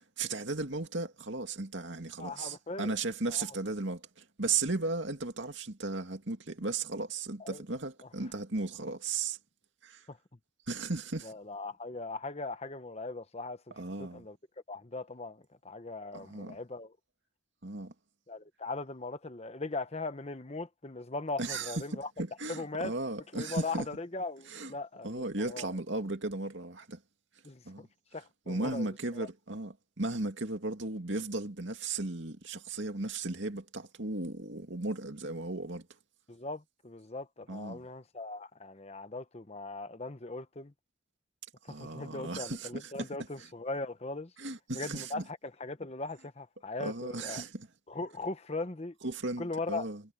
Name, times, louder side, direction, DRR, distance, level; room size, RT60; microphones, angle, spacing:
voice 1, 0.2-9.4 9.8-10.0 10.7-11.3 13.8-14.2 16.1-16.6 17.6-17.9 21.4-23.9 24.5-24.7 25.0-27.0 27.7-27.9 28.5-35.9 37.5-37.8 41.7-43.1 44.4-45.2 46.8-47.7 49.0-50.0, right 3 dB, 65° right, 2.4 m, -36 dB
voice 2, 2.2-3.0 3.3-3.5 7.4-7.6 10.1-10.2 11.2-13.7 14.0-14.4 14.7-16.9 18.3-22.1 22.5-22.9 23.3-25.7 27.4-27.9 28.1-29.3 36.3-40.7 41.8-44.3 44.7-47.4 47.9-48.9 49.4-49.9, left 3 dB, 30° left, 1.0 m, -39 dB
head